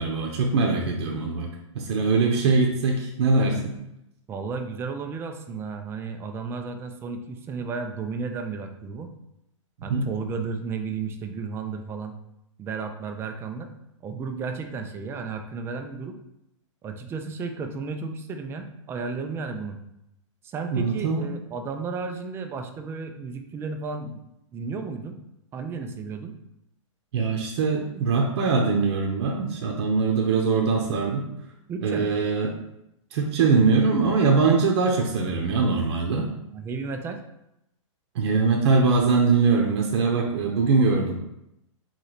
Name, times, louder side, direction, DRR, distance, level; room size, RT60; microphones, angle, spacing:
voice 1, 0.0-1.5 1.7-3.7 9.9-10.1 20.7-21.2 27.1-31.3 31.8-32.5 33.1-36.3 38.1-41.1, right 4 dB, 55° right, 1 dB, 0.8 m, -22 dB
voice 2, 4.3-9.1 9.8-12.1 12.6-13.7 14.0-16.2 16.8-19.8 20.4-24.2 24.5-25.2 25.5-26.4 31.7-32.2 36.5-37.2, right 4 dB, 15° right, 6 dB, 0.4 m, -33 dB
4.0 x 3.2 x 3.9 m, 0.83 s
hypercardioid pair, 140°, 17 cm